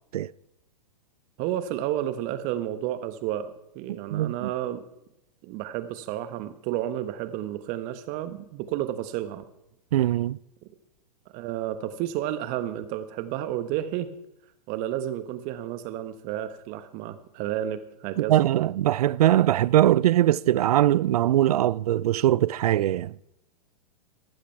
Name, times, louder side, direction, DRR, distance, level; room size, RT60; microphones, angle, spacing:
voice 1, 1.4-4.9 5.4-9.4 11.3-14.1 14.7-18.4, right 12 dB, 40° right, 1.3 m, -31 dB
voice 2, 4.1-4.5 9.9-10.4 18.3-23.1, right 13 dB, 70° right, 0.4 m, -21 dB
14.5 x 12.0 x 4.6 m
hypercardioid pair, 115°, 20 cm